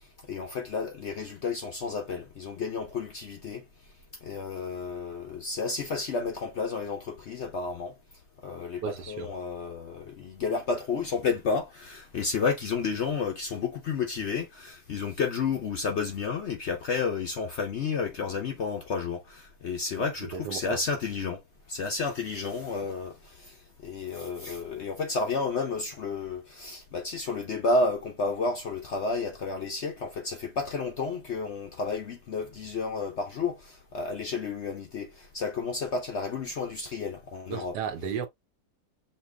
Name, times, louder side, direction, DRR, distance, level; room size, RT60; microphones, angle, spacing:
voice 1, 0.3-3.6 4.2-7.9 8.4-21.4 21.7-23.6 23.8-37.8, left 4 dB, 60° left, 0.7 m, -31 dB
voice 2, 8.8-9.3 20.0-20.8 37.5-38.3, right 7 dB, 80° right, 1.4 m, -34 dB
6.6 x 2.8 x 2.2 m
omnidirectional pair, 1.8 m